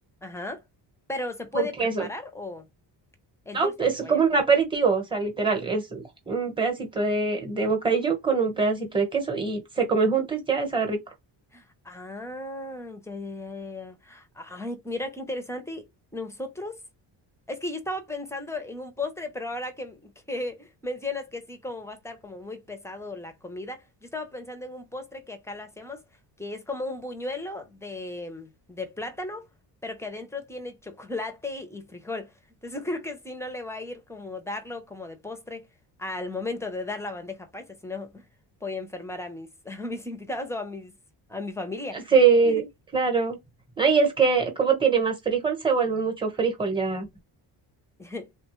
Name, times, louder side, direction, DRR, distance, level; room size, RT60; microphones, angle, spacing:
voice 1, 0.2-0.6 1.1-2.7 3.5-4.2 11.5-15.9 16.1-16.8 17.5-26.0 26.4-29.5 29.8-32.3 32.6-35.7 36.0-38.2 38.6-40.9 41.3-42.1 42.4-42.6 48.0-48.3, left 2 dB, 5° left, 0.5 m, -35 dB
voice 2, 1.5-2.1 3.5-11.0 41.9-42.7 42.9-43.4 43.8-47.1, right 5 dB, 10° right, 0.9 m, -23 dB
3.3 x 2.2 x 3.0 m
cardioid pair, 145°, 44 cm